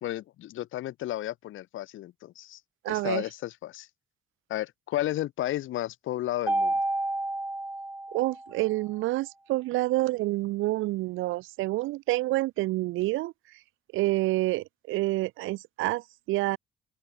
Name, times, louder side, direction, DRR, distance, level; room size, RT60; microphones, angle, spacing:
voice 1, 0.0-2.6 2.9-3.9 4.5-6.7, left 14 dB, 80° left, 1.8 m, -33 dB
voice 2, 2.8-3.2 8.1-13.3 13.9-16.6, right 18 dB, 90° right, 0.5 m, -28 dB
Mallet percussion, 6.5-8.7, right 2 dB, 10° right, 1.4 m, -30 dB
open air
cardioid pair, 90°, 20 cm